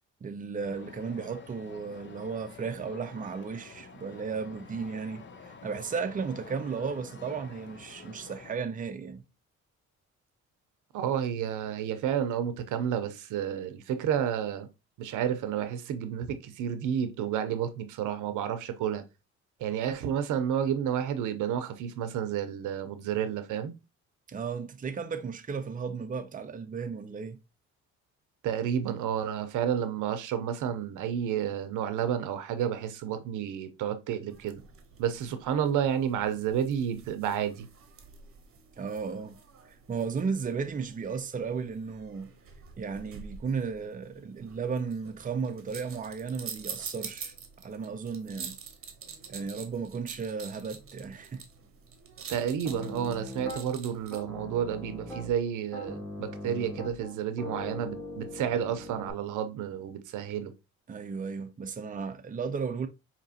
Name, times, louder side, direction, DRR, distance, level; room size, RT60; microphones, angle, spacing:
voice 1, 0.2-9.3 24.3-27.4 38.8-39.4 39.7-42.3 42.8-48.6 49.3-51.4 60.9-62.9, right 5 dB, 25° right, 0.6 m, -35 dB
sound 1, 0.6-8.6, left 4 dB, 40° left, 0.8 m, -49 dB
voice 2, 10.9-14.7 15.0-19.0 19.6-23.8 28.4-34.6 35.0-37.7 52.3-60.5, right 9 dB, 85° right, 0.7 m, -31 dB
sound 2, 34.3-54.2, right 6 dB, 45° right, 0.9 m, -47 dB
Piano, 52.6-53.6 54.1-55.4 55.7-59.1, left 1 dB, 5° left, 2.0 m, -40 dB
5.0 x 2.9 x 2.7 m
cardioid pair, 90°, 30 cm